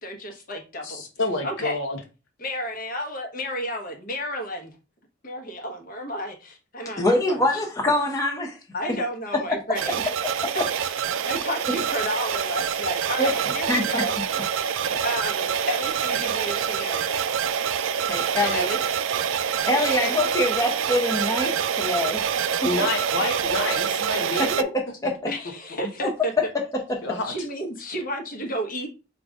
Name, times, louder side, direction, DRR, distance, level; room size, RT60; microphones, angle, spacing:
voice 1, 0.0-1.0 1.4-1.8 2.4-4.7 5.2-7.6 8.7-10.0 10.5-10.9 11.2-14.1 14.5-17.2 18.4-18.8 23.2-23.3 25.3-26.3 27.2-28.9, equal, 45° left, 1.1 m, -32 dB
voice 2, 0.8-2.0 22.6-24.7 27.0-27.3, left 2 dB, 70° left, 0.8 m, -28 dB
voice 3, 7.0-8.6 8.9-9.0 13.2-13.3 13.7-14.0 14.9-15.0 18.0-18.7 19.7-22.2 24.4-24.7 25.0-25.2 26.0-26.1 26.9-27.0, left 1 dB, 20° left, 0.7 m, -24 dB
sound 1, 9.7-24.6, right 8 dB, 80° right, 0.4 m, -26 dB
3.8 x 2.5 x 4.7 m
head